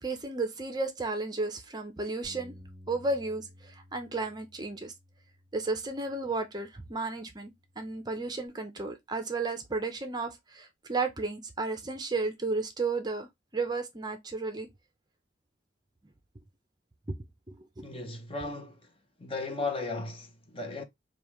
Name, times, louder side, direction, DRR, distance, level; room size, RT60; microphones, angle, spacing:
voice 1, 0.0-2.6 2.9-4.9 5.5-13.3 13.5-14.7 17.1-17.2 17.5-17.9, right 3 dB, 20° right, 0.6 m, -33 dB
Bass guitar, 2.2-6.7 7.3-8.5, left 1 dB, 5° left, 1.7 m, -55 dB
voice 2, 17.8-18.8 19.2-20.8, left 3 dB, 30° left, 0.8 m, -35 dB
5.3 x 2.3 x 3.0 m
head